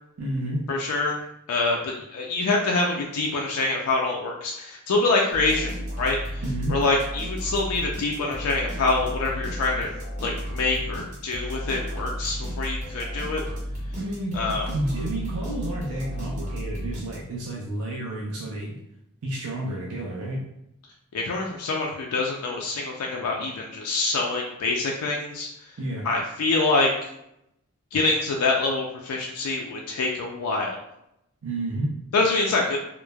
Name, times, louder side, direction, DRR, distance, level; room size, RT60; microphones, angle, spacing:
voice 1, 0.2-0.6 6.4-6.8 14.0-18.8 19.2-20.5 25.8-26.1 31.4-32.0, right 1 dB, 85° right, -4 dB, 0.5 m, -30 dB
voice 2, 0.7-1.2 1.5-5.7 6.0-6.4 6.7-9.9 10.2-13.4 14.3-14.7 21.1-25.5 26.0-27.1 27.9-30.8 32.1-32.8, left 3 dB, 85° left, 0 dB, 0.4 m, -25 dB
sound 1, 5.3-17.5, equal, 35° right, 1.0 m, -33 dB
3.0 x 2.0 x 2.2 m, 0.80 s
head